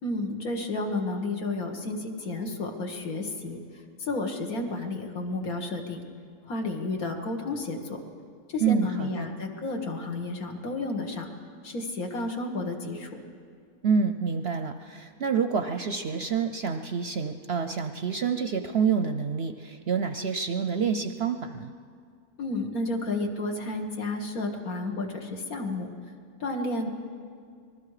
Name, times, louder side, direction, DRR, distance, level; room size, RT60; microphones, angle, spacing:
voice 1, 0.0-6.0 6.5-8.0 8.5-11.3 11.6-13.1 22.4-25.9 26.4-26.9, left 2 dB, 70° left, 2 dB, 2.2 m, -31 dB
voice 2, 8.6-9.3 13.8-21.7, right 6 dB, 55° right, 8 dB, 0.7 m, -27 dB
26.0 x 20.5 x 4.9 m, 2.2 s
omnidirectional pair, 1.6 m